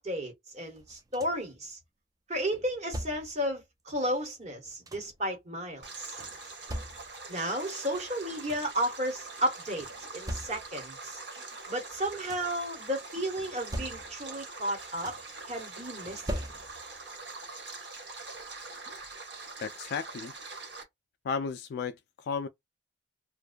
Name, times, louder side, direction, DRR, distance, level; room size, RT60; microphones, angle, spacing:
voice 1, 0.0-1.8 2.3-6.2 7.3-9.9 10.1-11.2 11.7-15.1 15.5-16.4, equal, 40° right, 1.1 m, -33 dB
sound 1, 0.8-1.6 2.5-3.5 4.4-5.3 6.2-7.4 8.0-8.1 8.2-8.9 9.8-10.9 11.9-12.6 13.4-14.4 14.7-15.4 16.1-17.0 18.3-18.4 19.0-19.1, equal, 20° right, 0.4 m, -41 dB
Stream, 5.8-20.8, right 3 dB, 75° right, 1.3 m, -44 dB
voice 2, 19.6-20.4 21.2-22.5, left 5 dB, 60° left, 0.3 m, -34 dB
2.5 x 2.2 x 2.2 m
head